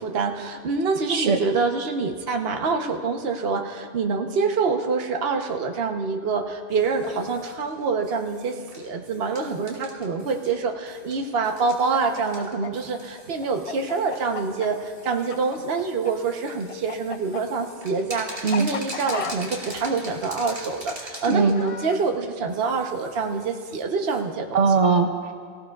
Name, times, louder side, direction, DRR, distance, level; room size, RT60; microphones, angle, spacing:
voice 1, 0.0-24.7, right 4 dB, 55° right, 3 dB, 1.2 m, -26 dB
sound 1, 6.7-24.2, right 1 dB, 30° right, 2.5 m, -44 dB
Chicken rooster, 11.7-16.1 16.4-22.0, left 5 dB, 50° left, 0.4 m, -35 dB
voice 2, 24.5-25.3, right 4 dB, 75° right, 5 dB, 1.3 m, -20 dB
23.5 x 16.0 x 2.4 m, 2.2 s
omnidirectional pair, 1.2 m